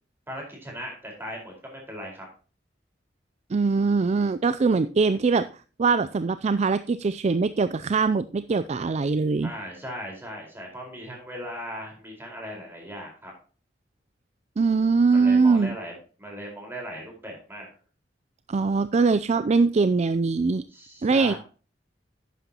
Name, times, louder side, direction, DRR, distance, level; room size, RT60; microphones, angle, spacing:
voice 1, 0.3-2.3 9.4-13.3 15.1-17.7 20.7-21.4, equal, 15° right, 0 dB, 4.5 m, -38 dB
voice 2, 3.5-5.5 5.8-9.5 14.6-15.8 18.5-20.6 21.0-21.3, right 4 dB, 40° right, 13 dB, 0.4 m, -22 dB
11.5 x 9.2 x 2.9 m, 0.37 s
head